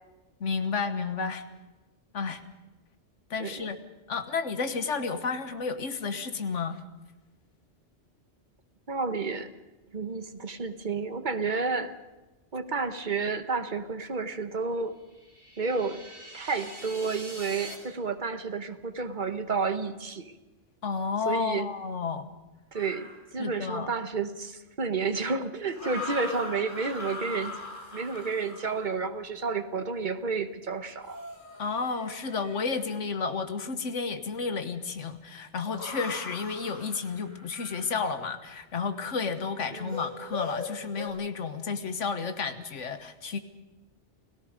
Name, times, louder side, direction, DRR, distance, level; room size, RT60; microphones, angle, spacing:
voice 1, 0.4-1.4 2.1-2.4 3.3-3.8 4.1-6.8 20.8-22.3 23.4-23.9 31.6-43.4, left 5 dB, 85° left, 10 dB, 1.6 m, -31 dB
voice 2, 8.9-9.5 9.9-11.9 12.5-15.0 15.6-16.0 16.3-20.4 21.2-21.7 22.7-27.6 27.9-31.2 39.7-39.9, right 4 dB, 40° right, 9 dB, 1.2 m, -31 dB
sound 1, 15.0-17.8, right 1 dB, 65° right, 4.7 m, -44 dB
sound 2, 22.7-23.2 25.7-28.9 31.0-32.8 35.7-37.9 39.9-41.1, left 3 dB, 45° left, 3.8 m, -40 dB
29.5 x 17.5 x 5.2 m, 1.1 s
omnidirectional pair, 1.2 m